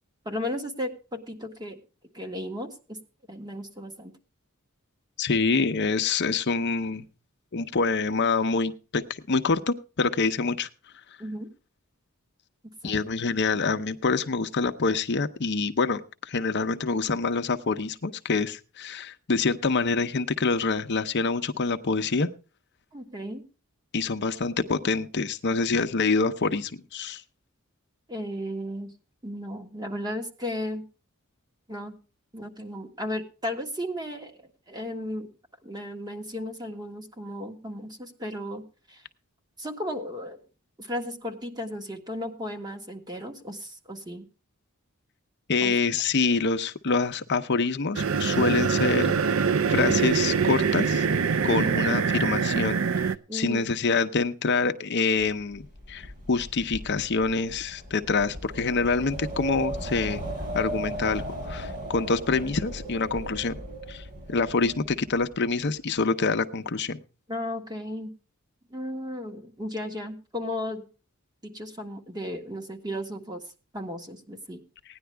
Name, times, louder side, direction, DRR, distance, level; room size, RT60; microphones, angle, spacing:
voice 1, 0.2-1.8 2.1-3.0 3.3-4.1 11.2-11.5 12.8-13.0 22.9-23.4 28.1-28.9 29.2-30.8 31.7-32.0 32.3-35.3 35.6-38.6 38.9-39.0 39.6-40.4 40.8-44.2 45.6-45.7 51.5-51.8 53.3-53.7 67.3-68.1 68.7-70.8 71.4-73.4 73.7-74.6, left 1 dB, 20° right, 4 dB, 1.6 m, -35 dB
voice 2, 5.2-7.1 7.5-9.0 9.3-10.7 12.8-22.3 23.9-27.2 45.5-49.4 49.7-51.1 51.4-55.6 55.9-60.2 60.5-63.6 63.9-67.0, left 4 dB, 55° left, 8 dB, 0.7 m, -26 dB
sound 1, 47.9-53.1, right 6 dB, 65° right, 0.6 m, -24 dB
Wind, 55.2-65.3, right 1 dB, 40° right, 5.8 m, -37 dB
17.0 x 10.5 x 3.3 m, 0.34 s
head